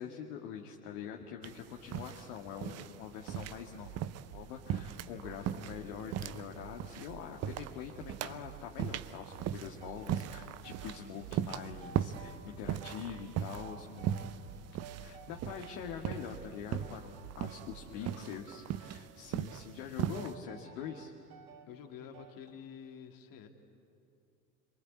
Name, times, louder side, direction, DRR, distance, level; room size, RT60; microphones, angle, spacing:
voice 1, 0.0-3.9 4.3-14.5 15.0-21.1, left 8 dB, 60° left, 1 dB, 1.9 m, -44 dB
sound 1, 1.4-20.3, right 10 dB, 30° right, 0.8 m, -39 dB
sound 2, 3.3-18.1, right 8 dB, 75° right, 1.3 m, -52 dB
sound 3, 9.8-11.0 11.5-12.5 12.8-14.5 14.8-16.4 16.8-17.9 18.1-19.1 19.5-19.7 20.1-21.7 22.1-22.5, right 7 dB, 50° right, 2.4 m, -54 dB
voice 2, 17.6-18.4 21.7-23.5, left 8 dB, 40° left, 5 dB, 2.7 m, -50 dB
26.0 x 23.0 x 8.4 m, 2.6 s
figure-of-eight pair, 75°, 49 cm